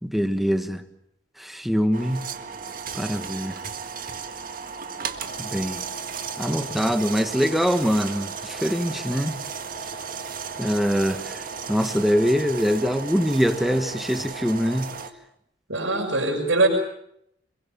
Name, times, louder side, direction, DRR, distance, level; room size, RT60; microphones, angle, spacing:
voice 1, 0.0-0.8 1.4-2.2 2.9-3.6 5.4-5.8 6.4-9.4 10.6-14.9, equal, ahead, 1.6 m, -23 dB
sound 1, 1.9-15.1, right 6 dB, 50° right, 1.8 m, -35 dB
voice 2, 15.7-16.7, right 2 dB, 85° right, 6.1 m, -22 dB
27.0 x 22.0 x 7.2 m
head